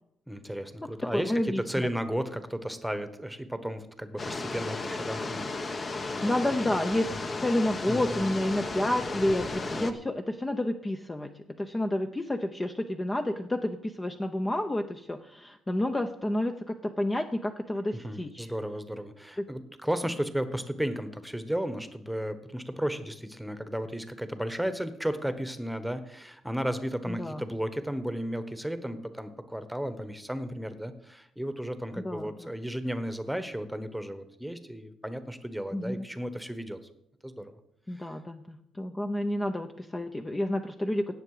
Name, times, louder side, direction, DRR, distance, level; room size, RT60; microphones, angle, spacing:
voice 1, 0.3-6.5 7.9-8.3 9.8-10.0 17.9-36.8 37.2-37.5 37.9-38.1, equal, ahead, 11 dB, 1.2 m, -34 dB
voice 2, 0.8-1.9 6.2-7.1 7.4-18.5 27.1-27.4 32.0-32.3 35.7-36.1 37.9-41.2, left 1 dB, 15° left, 6 dB, 0.8 m, -30 dB
sound 1, 4.2-9.9, left 3 dB, 35° left, 1.1 m, -34 dB
17.5 x 6.7 x 5.0 m, 0.79 s
cardioid pair, 90°, 0 cm